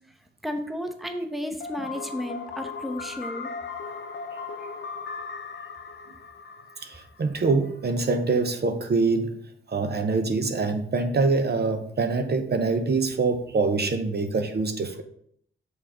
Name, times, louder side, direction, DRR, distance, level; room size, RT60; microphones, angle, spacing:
voice 1, 0.4-3.5, left 1 dB, ahead, 0.9 m, -33 dB
sound 1, 1.6-7.4, left 5 dB, 60° left, 0.7 m, -37 dB
voice 2, 6.8-9.4 9.7-15.0, right 3 dB, 50° right, 0.8 m, -25 dB
5.5 x 4.0 x 5.0 m
cardioid pair, 55°, 21 cm